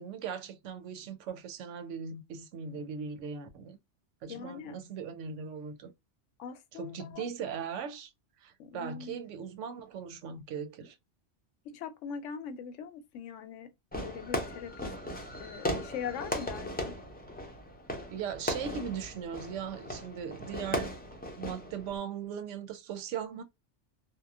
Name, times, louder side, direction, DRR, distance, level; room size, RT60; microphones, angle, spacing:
voice 1, 0.0-3.8 4.2-5.9 6.7-8.1 8.4-11.0 18.1-20.9 21.3-23.4, right 7 dB, 90° right, 0.9 m, -39 dB
voice 2, 4.3-4.7 6.4-7.3 8.6-9.2 11.6-13.7 14.0-14.9 15.4-17.0, left 7 dB, 85° left, 0.9 m, -41 dB
Fireworks, 13.9-22.0, left 1 dB, 15° left, 0.4 m, -37 dB
2.9 x 2.1 x 2.3 m
omnidirectional pair, 1.2 m